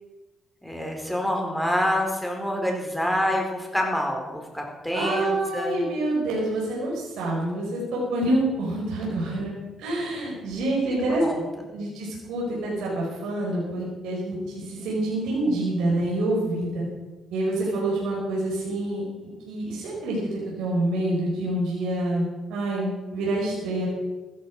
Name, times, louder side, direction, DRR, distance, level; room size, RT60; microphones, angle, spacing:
voice 1, 0.6-5.8 11.2-11.4, left 1 dB, ahead, 1 dB, 4.2 m, -27 dB
voice 2, 4.9-9.5 9.8-11.2 11.7-16.8 17.3-23.9, right 1 dB, 90° right, -4 dB, 5.1 m, -27 dB
15.0 x 13.5 x 4.9 m, 1.2 s
cardioid pair, 90°, 0 cm